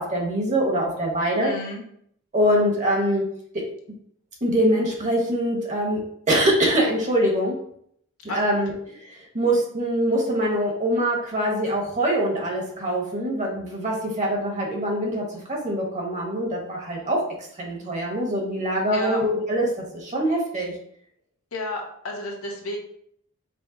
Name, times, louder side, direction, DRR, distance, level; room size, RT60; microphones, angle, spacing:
voice 1, 0.0-1.5 2.3-3.2 4.4-6.0 6.3-7.5 8.3-17.2 17.6-20.7, equal, 35° right, -1 dB, 1.1 m, -24 dB
voice 2, 1.4-1.8 8.3-8.4 18.9-19.2 21.5-22.8, left 1 dB, 75° left, 0 dB, 1.0 m, -31 dB
5.1 x 2.0 x 3.8 m, 0.68 s
head